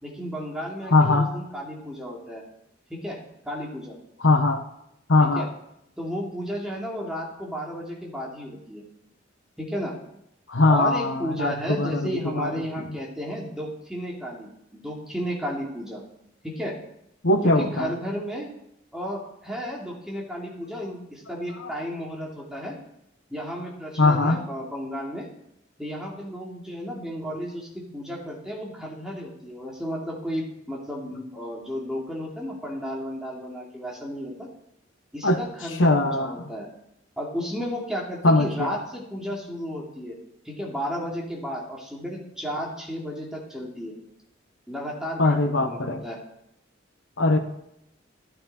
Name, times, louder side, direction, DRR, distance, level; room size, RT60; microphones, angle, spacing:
voice 1, 0.0-2.4 2.9-3.2 3.4-4.0 5.2-5.5 6.0-8.8 9.6-10.0 10.7-16.0 16.4-16.8 17.4-18.5 18.9-22.8 23.3-25.3 25.8-34.5 35.1-36.7 37.2-40.2 40.4-44.0 44.7-46.2, equal, 5° right, -3 dB, 2.7 m, -33 dB
voice 2, 0.9-1.3 4.2-4.6 5.1-5.5 10.5-12.9 17.2-17.9 21.6-21.7 24.0-24.4 35.2-35.4 35.8-36.4 38.2-38.8 45.2-46.0 47.2-47.4, left 2 dB, 75° left, 6 dB, 1.3 m, -21 dB
13.0 x 11.5 x 4.5 m, 0.79 s
head